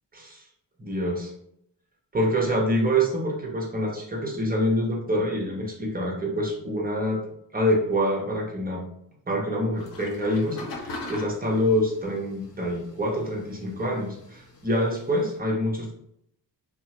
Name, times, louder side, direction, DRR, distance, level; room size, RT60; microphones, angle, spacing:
voice 1, 0.8-1.3 2.1-7.2 7.5-8.8 9.3-15.9, equal, 20° right, -1 dB, 0.9 m, -26 dB
sound 1, 9.8-15.4, left 2 dB, 75° left, 0.8 m, -42 dB
2.7 x 2.2 x 2.9 m, 0.73 s
cardioid pair, 50°, 43 cm